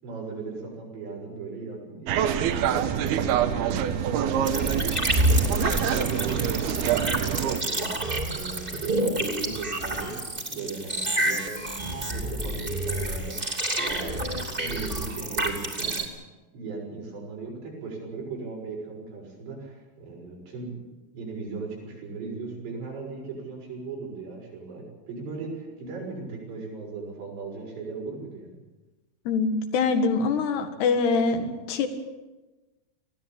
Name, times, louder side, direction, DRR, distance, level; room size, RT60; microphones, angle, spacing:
voice 1, 0.0-4.8 5.2-11.5 11.8-15.9 16.5-28.6, right 4 dB, 90° right, -2 dB, 8.5 m, -38 dB
sound 1, 2.1-7.6, right 9 dB, 70° right, 2.9 m, -26 dB
sound 2, 4.4-16.1, right 1 dB, 15° right, 2.2 m, -28 dB
voice 2, 29.3-31.9, left 4 dB, 75° left, 7 dB, 3.8 m, -24 dB
21.0 x 16.0 x 8.9 m, 1.2 s
omnidirectional pair, 4.8 m